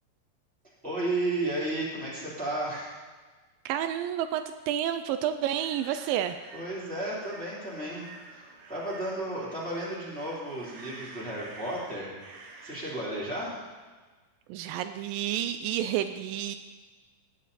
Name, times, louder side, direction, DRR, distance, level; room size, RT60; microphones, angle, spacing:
voice 1, 0.8-2.9 6.5-8.0 8.3-12.1 12.6-13.6, right 1 dB, ahead, -7 dB, 3.0 m, -33 dB
voice 2, 3.7-6.4 14.5-16.6, right 11 dB, 85° right, 9 dB, 2.2 m, -30 dB
sound 1, 5.6-13.1, right 3 dB, 70° right, 2.7 m, -49 dB
17.0 x 8.5 x 4.2 m, 1.3 s
omnidirectional pair, 4.0 m